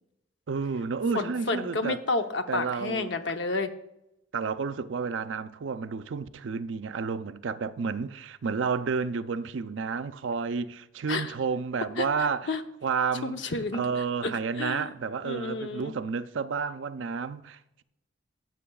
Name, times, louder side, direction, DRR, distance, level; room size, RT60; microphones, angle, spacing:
voice 1, 0.5-2.0 2.5-3.1 4.3-12.5 12.8-13.4 13.7-17.8, right 5 dB, 90° right, 0.5 m, -31 dB
voice 2, 1.1-3.7 11.1-11.3 12.0-12.1 12.5-12.6 13.2-13.8 14.2-14.3 14.6-14.9 15.2-15.9, left 3 dB, 75° left, 0.8 m, -30 dB
15.0 x 7.8 x 2.3 m
head